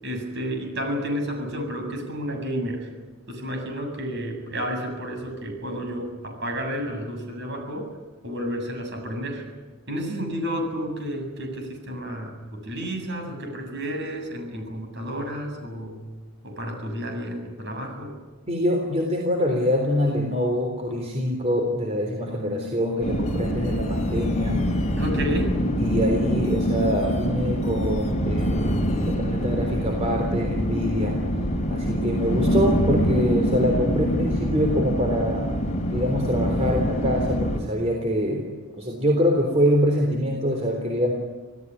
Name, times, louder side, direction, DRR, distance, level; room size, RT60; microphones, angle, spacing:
voice 1, 0.0-2.9 3.3-7.9 8.2-9.4 9.9-16.0 16.4-18.1 25.0-25.6, equal, 55° right, 4 dB, 7.7 m, -31 dB
voice 2, 18.5-24.7 25.8-31.2 31.7-35.5 35.9-41.1, equal, 30° right, 1 dB, 3.6 m, -25 dB
sound 1, 23.0-37.6, equal, 35° left, 3.1 m, -25 dB
27.0 x 17.5 x 9.8 m, 1.2 s
head